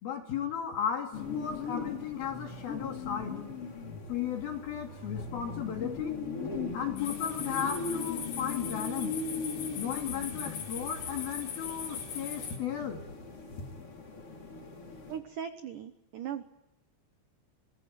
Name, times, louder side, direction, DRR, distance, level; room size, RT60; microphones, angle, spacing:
voice 1, 0.0-3.4 4.1-6.1 6.7-9.1 9.8-13.0, left 8 dB, 60° left, 3 dB, 4.3 m, -35 dB
sound 1, 1.1-15.2, left 4 dB, 30° left, 4.5 m, -39 dB
sound 2, 7.0-12.6, left 7 dB, 75° left, 6.1 m, -40 dB
voice 2, 15.1-16.4, right 8 dB, 75° right, 9 dB, 1.9 m, -39 dB
27.0 x 22.5 x 9.6 m, 0.92 s
omnidirectional pair, 5.2 m